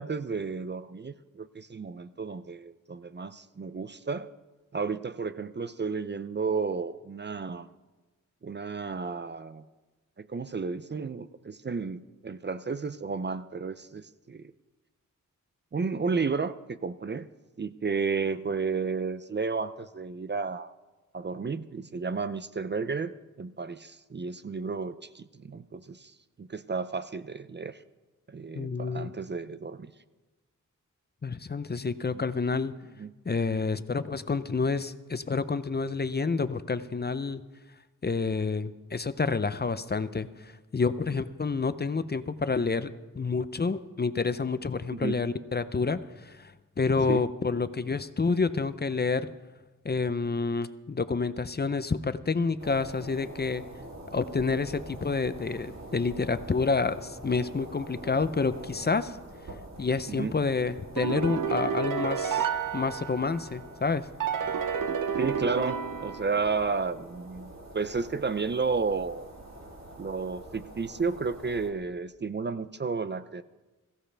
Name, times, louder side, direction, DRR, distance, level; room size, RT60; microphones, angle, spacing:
voice 1, 0.0-4.3 4.7-7.7 8.4-9.6 10.2-14.5 15.7-17.3 17.6-20.7 21.1-26.1 26.4-27.8 28.3-29.9 32.1-32.2 33.0-33.1 44.9-45.2 47.1-47.3 60.1-60.3 65.2-69.3 70.0-73.4, right 4 dB, 35° right, 13 dB, 0.5 m, -32 dB
voice 2, 28.5-29.1 31.2-32.7 33.3-37.4 38.0-42.9 43.1-49.3 49.8-53.6 54.1-59.2 59.8-62.5 62.7-64.1, left 4 dB, 30° left, 13 dB, 0.6 m, -29 dB
sound 1, 52.6-71.7, right 1 dB, 55° right, 2.9 m, -46 dB
sound 2, 61.0-63.6 64.2-66.7, right 7 dB, 80° right, 0.8 m, -30 dB
21.5 x 15.5 x 3.4 m, 1.2 s
wide cardioid pair, 115°, 32 cm